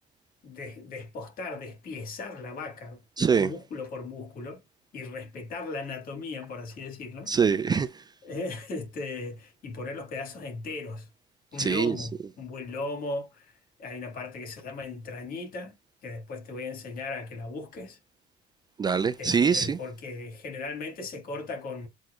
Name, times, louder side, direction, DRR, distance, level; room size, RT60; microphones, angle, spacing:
voice 1, 0.4-3.0 3.4-4.6 4.9-7.3 8.2-11.1 11.5-13.5 13.8-15.8 16.0-18.0 19.2-21.9, left 3 dB, 60° left, 2.0 m, -37 dB
voice 2, 3.2-3.5 7.3-8.0 11.6-12.1 18.8-19.8, right 6 dB, 25° right, 0.3 m, -24 dB
7.6 x 2.7 x 2.4 m
cardioid pair, 110°, 17 cm